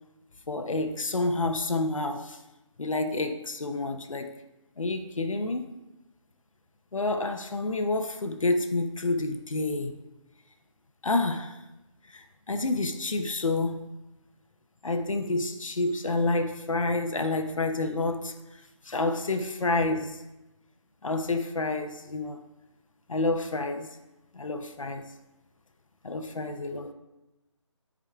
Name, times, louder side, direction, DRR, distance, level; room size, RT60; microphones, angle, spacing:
voice 1, 0.5-2.4 2.8-4.3 4.8-5.8 6.9-10.0 11.0-11.6 12.1-13.9 14.8-20.2 21.0-22.4 23.1-23.9 24.3-25.1 26.0-26.9, left 2 dB, 85° left, 7 dB, 0.8 m, -29 dB
13.0 x 4.8 x 2.3 m, 1.0 s
figure-of-eight pair, 175°, 16 cm